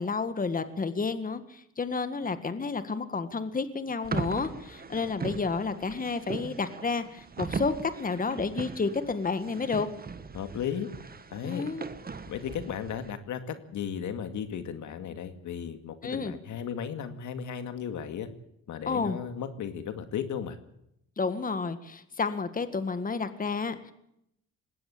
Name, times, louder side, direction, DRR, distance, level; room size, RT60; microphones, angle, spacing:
voice 1, 0.0-9.9 11.4-11.8 16.0-16.3 18.9-19.2 21.2-23.9, left 4 dB, 30° left, 11 dB, 1.8 m, -31 dB
sound 1, 4.0-13.1, right 4 dB, 30° right, 1.8 m, -39 dB
voice 2, 10.3-10.9 11.3-11.7 12.3-18.3 18.7-20.6, left 8 dB, 75° left, 9 dB, 2.3 m, -35 dB
20.0 x 17.0 x 8.8 m, 0.78 s
cardioid pair, 90°, 30 cm